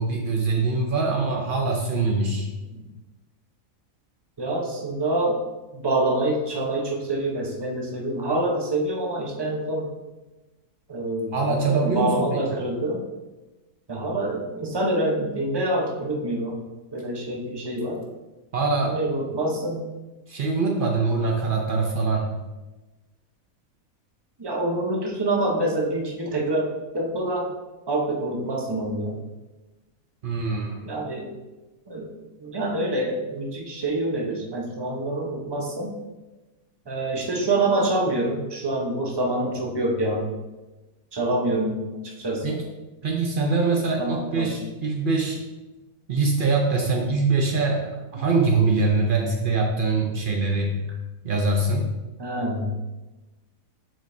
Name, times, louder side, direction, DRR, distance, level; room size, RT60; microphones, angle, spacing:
voice 1, 0.0-2.5 11.3-12.4 18.5-19.0 20.3-22.3 30.2-30.8 42.4-42.6 43.0-45.4 46.1-50.8 51.2-51.9, right 3 dB, 85° right, 1 dB, 0.4 m, -23 dB
voice 2, 4.4-5.4 5.7-9.9 10.9-13.0 13.9-16.6 16.9-18.0 18.8-19.9 24.4-26.7 26.9-27.5 27.9-29.2 30.8-31.3 31.9-32.1 32.4-35.9 36.9-40.3 41.1-41.8 42.2-42.6 44.0-44.5 48.1-48.2 52.2-52.7, right 1 dB, 25° right, 0 dB, 0.6 m, -26 dB
7.2 x 5.2 x 2.6 m, 1.1 s
omnidirectional pair, 1.7 m